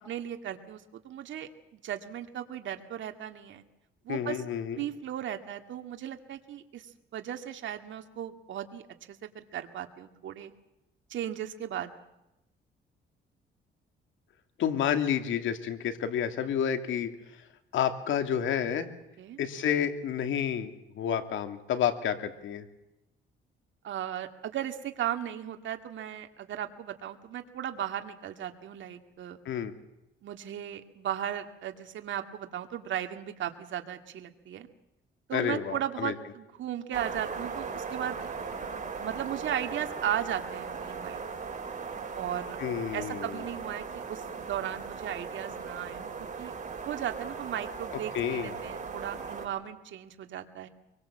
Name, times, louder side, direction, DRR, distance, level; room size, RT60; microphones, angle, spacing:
voice 1, 0.1-3.6 4.0-4.4 4.8-10.5 11.1-11.9 19.2-19.4 23.8-29.4 30.2-34.7 35.3-38.3 38.6-41.3 42.1-46.5 46.8-50.7, right 10 dB, 70° right, 6 dB, 2.2 m, -36 dB
voice 2, 4.1-4.8 14.6-17.1 17.7-18.9 19.4-22.6 29.4-29.7 35.3-36.1 42.6-43.4 48.1-48.5, left 9 dB, 80° left, 8 dB, 2.6 m, -30 dB
sound 1, 36.9-49.5, right 5 dB, 40° right, 6.5 m, -38 dB
24.5 x 23.0 x 7.5 m, 0.92 s
cardioid pair, 90°, 20 cm